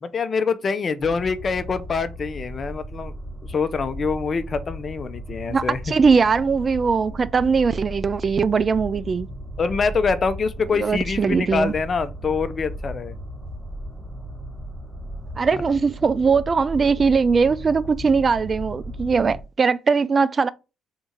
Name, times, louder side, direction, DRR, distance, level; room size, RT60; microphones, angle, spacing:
voice 1, 0.0-3.1 3.5-5.9 9.6-13.1, left 5 dB, 45° left, 0.6 m, -25 dB
sound 1, 1.0-19.4, equal, 10° right, 1.8 m, -36 dB
voice 2, 5.5-9.3 10.8-11.7 15.4-20.5, right 5 dB, 40° right, 0.3 m, -20 dB
3.7 x 2.7 x 4.4 m
hypercardioid pair, 55°, 0 cm